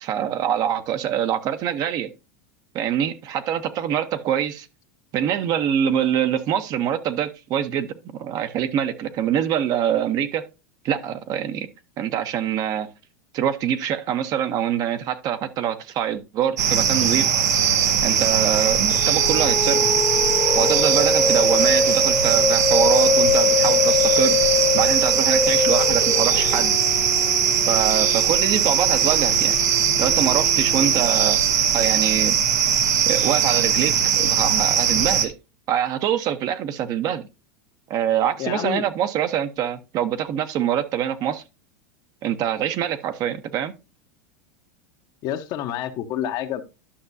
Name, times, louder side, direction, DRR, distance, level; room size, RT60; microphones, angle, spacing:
voice 1, 0.0-2.1 2.7-4.7 5.1-10.5 10.8-11.7 12.0-12.9 13.3-17.3 18.0-19.8 20.5-24.4 24.7-26.7 27.7-29.6 30.0-31.4 31.7-32.4 33.1-35.3 35.7-37.3 37.9-41.4 42.2-43.7, right 9 dB, 45° right, 0.9 m, -24 dB
sound 1, 16.6-35.3, right 8 dB, 85° right, 1.2 m, -20 dB
sound 2, 18.9-31.7, left 5 dB, 20° left, 0.7 m, -24 dB
voice 2, 38.4-38.8 45.2-46.6, left 11 dB, 50° left, 1.0 m, -28 dB
11.5 x 6.0 x 2.7 m
hypercardioid pair, 110°, 9 cm